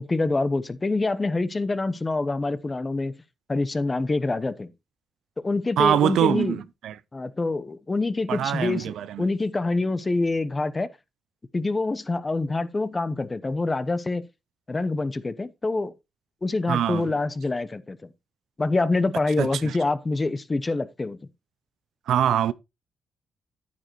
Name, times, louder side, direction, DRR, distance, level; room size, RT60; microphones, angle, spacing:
voice 1, 0.0-3.1 3.5-4.7 5.4-6.6 7.1-10.9 11.5-14.2 14.7-15.9 16.4-18.0 18.6-21.2, left 3 dB, 30° left, 0.9 m, -26 dB
voice 2, 5.8-7.0 8.3-9.3 16.7-17.1 19.4-19.8 22.1-22.5, right 10 dB, 75° right, 0.5 m, -24 dB
9.6 x 9.0 x 3.1 m
supercardioid pair, 60°, 0 cm